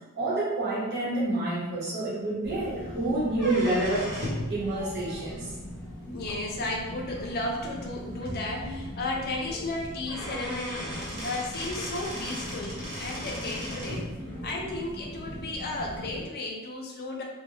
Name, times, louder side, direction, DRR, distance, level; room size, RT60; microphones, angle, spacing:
voice 1, 0.2-5.5, right 2 dB, 45° right, -8 dB, 1.0 m, -28 dB
sound 1, 2.4-16.3, equal, 10° left, 0.8 m, -40 dB
sound 2, 3.3-4.5 6.3-6.4 7.3-7.4 7.8-7.9 8.2-8.3 9.7-9.8 10.1-14.0, equal, 80° right, 1.0 m, -36 dB
voice 2, 6.1-14.1 14.4-17.2, left 2 dB, 45° left, -1 dB, 0.5 m, -34 dB
2.2 x 2.2 x 3.2 m, 1.1 s
head